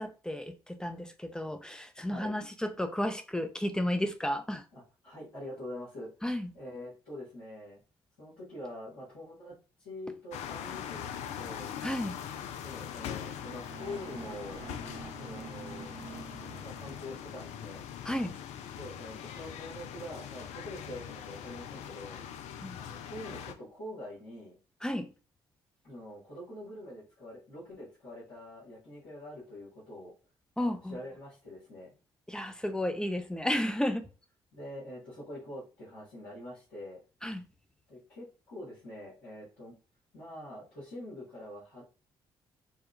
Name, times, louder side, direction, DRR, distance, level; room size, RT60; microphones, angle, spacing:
voice 1, 0.0-4.6 6.2-6.5 11.8-12.1 18.1-18.3 22.6-22.8 24.8-25.1 30.6-31.0 32.3-34.1 37.2-37.4, left 1 dB, 5° left, 0.5 m, -32 dB
voice 2, 4.7-6.1 6.5-7.8 8.2-9.5 9.8-11.0 11.3-11.7 12.6-14.6 15.1-15.9 16.6-17.8 18.8-22.2 22.7-24.5 25.8-30.1 30.6-32.0 34.5-37.0 37.9-39.7 40.1-41.8, left 1 dB, 80° left, 1.6 m, -45 dB
sound 1, 10.3-23.5, left 9 dB, 65° left, 0.4 m, -42 dB
sound 2, 13.6-17.7, right 5 dB, 45° right, 0.6 m, -47 dB
4.4 x 2.2 x 2.4 m
figure-of-eight pair, 40°, 13 cm